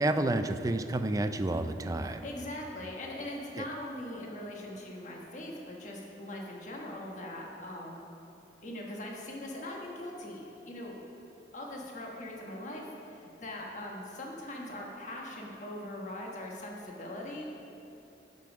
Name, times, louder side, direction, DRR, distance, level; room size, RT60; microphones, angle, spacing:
voice 1, 0.0-2.2, right 2 dB, 20° right, 9 dB, 0.3 m, -29 dB
voice 2, 2.0-8.0 8.6-11.0 11.5-17.4, left 1 dB, 40° left, -2 dB, 1.3 m, -41 dB
12.0 x 5.4 x 6.2 m, 2.8 s
head